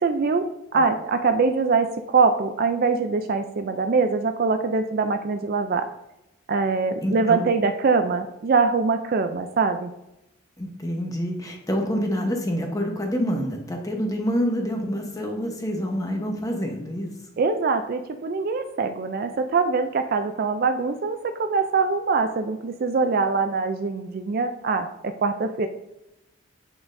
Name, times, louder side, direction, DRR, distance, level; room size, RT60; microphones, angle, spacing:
voice 1, 0.0-5.9 6.5-9.9 17.4-25.7, right 4 dB, 45° right, 8 dB, 0.3 m, -23 dB
voice 2, 7.0-7.5 10.6-17.1, equal, 15° left, 2 dB, 0.9 m, -27 dB
8.3 x 5.9 x 2.6 m, 0.89 s
head